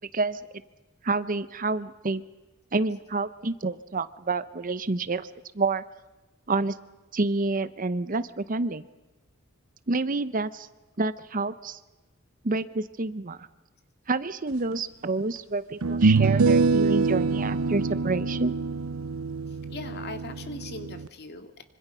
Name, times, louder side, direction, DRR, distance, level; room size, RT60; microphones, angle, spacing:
voice 1, 1.0-2.2 2.7-5.3 5.5-5.8 6.5-6.8 7.1-8.9 9.9-10.7 11.0-11.8 12.4-13.5 14.1-18.5, right 3 dB, 40° right, 14 dB, 0.8 m, -28 dB
sound 1, 14.7-14.8 15.8-21.1, right 4 dB, 90° right, 0.7 m, -25 dB
voice 2, 19.7-21.6, left 3 dB, 50° left, 6 dB, 2.2 m, -40 dB
25.5 x 25.5 x 5.6 m, 1.1 s
head